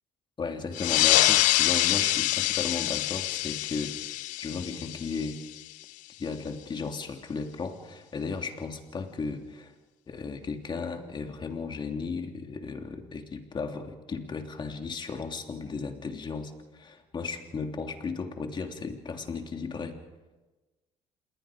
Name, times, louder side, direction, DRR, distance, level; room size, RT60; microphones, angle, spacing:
voice 1, 0.4-4.0 4.4-5.4 6.2-9.7 10.1-20.0, left 4 dB, 35° left, 4 dB, 3.1 m, -35 dB
sound 1, 0.7-5.8, left 18 dB, 80° left, 0.6 m, -26 dB
28.0 x 20.5 x 5.1 m, 1.2 s
supercardioid pair, 85°, 13 cm